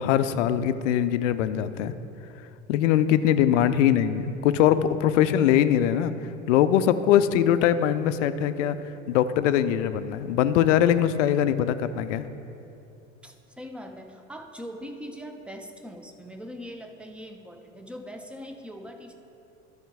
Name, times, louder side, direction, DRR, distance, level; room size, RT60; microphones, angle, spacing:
voice 1, 0.0-1.9 2.7-6.1 6.5-8.8 9.1-12.3, left 10 dB, 70° left, 12 dB, 0.6 m, -22 dB
voice 2, 3.5-3.8 13.2-19.1, equal, 5° right, 5 dB, 0.7 m, -41 dB
12.0 x 5.0 x 4.7 m, 2.8 s
hypercardioid pair, 75°, 39 cm